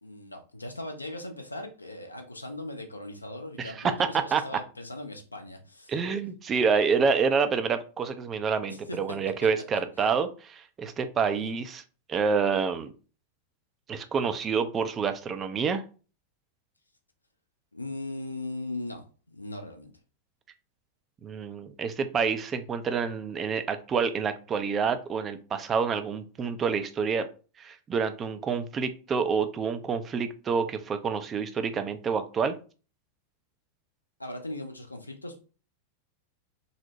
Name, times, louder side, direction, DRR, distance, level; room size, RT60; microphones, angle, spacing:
voice 1, 0.0-5.9 8.7-9.0 11.3-11.6 17.7-19.9 34.2-35.4, left 2 dB, 85° left, 5 dB, 0.4 m, -39 dB
voice 2, 3.6-4.4 5.9-11.8 12.1-12.9 13.9-15.8 21.2-27.3 27.6-32.5, right 5 dB, 25° right, 9 dB, 0.3 m, -28 dB
2.7 x 2.0 x 2.8 m, 0.36 s
figure-of-eight pair, 90°, 0 cm